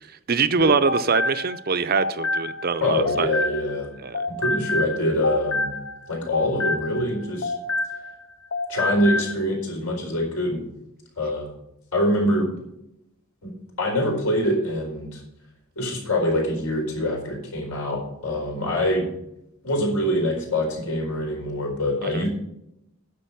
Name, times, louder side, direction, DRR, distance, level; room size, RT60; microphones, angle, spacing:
voice 1, 0.3-3.3 4.0-4.3 22.1-22.2, right 5 dB, 45° right, 12 dB, 0.6 m, -23 dB
sound 1, 0.6-3.9 4.1-8.2 8.5-9.3, left 2 dB, 65° left, 0.8 m, -28 dB
voice 2, 2.8-3.9 4.4-5.7 6.1-7.5 8.7-10.6 11.2-11.5 11.9-12.5 13.4-15.2 15.8-19.1 19.6-22.3, left 1 dB, 80° left, 0 dB, 4.4 m, -24 dB
10.0 x 6.8 x 6.8 m, 0.84 s
head